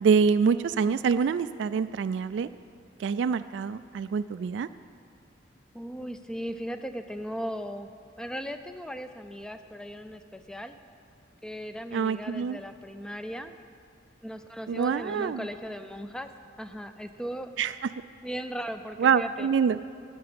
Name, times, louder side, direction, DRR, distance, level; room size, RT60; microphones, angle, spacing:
voice 1, 0.0-2.5 3.0-4.7 11.9-12.6 14.7-15.4 17.6-17.7 19.0-19.8, right 6 dB, 70° right, 13 dB, 0.3 m, -25 dB
voice 2, 5.7-7.9 8.2-10.7 11.4-13.5 14.2-16.3 16.6-17.5 18.2-19.5, equal, 5° left, 9 dB, 0.5 m, -37 dB
11.0 x 8.6 x 8.7 m, 2.3 s
head